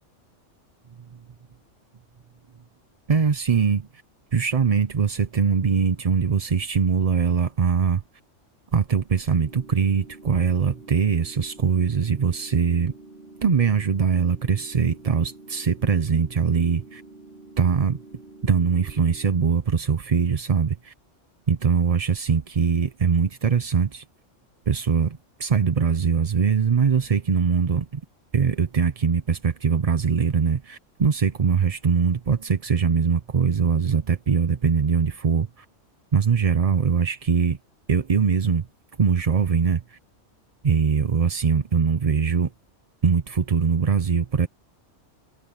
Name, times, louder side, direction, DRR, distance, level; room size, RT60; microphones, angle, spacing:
voice 1, 3.1-3.9 4.3-8.0 8.7-12.9 13.4-17.0 17.6-18.0 18.4-20.9 21.5-24.0 24.7-28.0 28.3-35.6 36.1-37.6 37.9-38.7 39.0-40.0 40.6-42.5 43.0-44.5, right 6 dB, 35° right, 0.6 m, -22 dB
sound 1, 9.3-19.3, right 2 dB, 55° right, 4.5 m, -47 dB
omnidirectional pair, 1.3 m